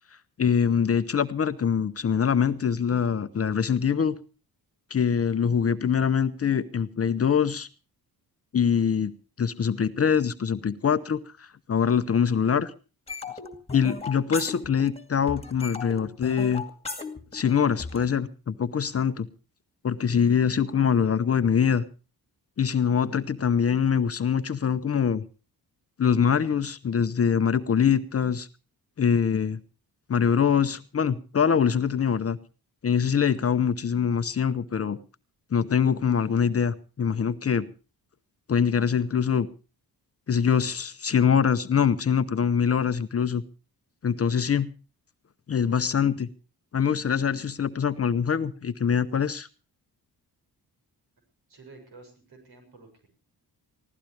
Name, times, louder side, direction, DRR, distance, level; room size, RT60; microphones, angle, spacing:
voice 1, 0.4-4.2 4.9-7.7 8.5-9.1 9.4-12.7 13.7-16.6 17.3-19.3 19.8-21.8 22.6-25.2 26.0-28.5 29.0-29.6 30.1-32.4 32.8-35.0 35.5-37.7 38.5-39.5 40.3-43.4 44.0-44.7 45.5-46.3 46.7-49.5, left 7 dB, 40° left, 11 dB, 0.7 m, -24 dB
sound 1, 13.1-15.0 15.3-18.1, left 4 dB, 15° left, 2.2 m, -36 dB
voice 2, 51.5-53.1, right 3 dB, 75° right, 5 dB, 6.7 m, -50 dB
24.0 x 16.0 x 3.2 m, 0.34 s
wide cardioid pair, 150°, 38 cm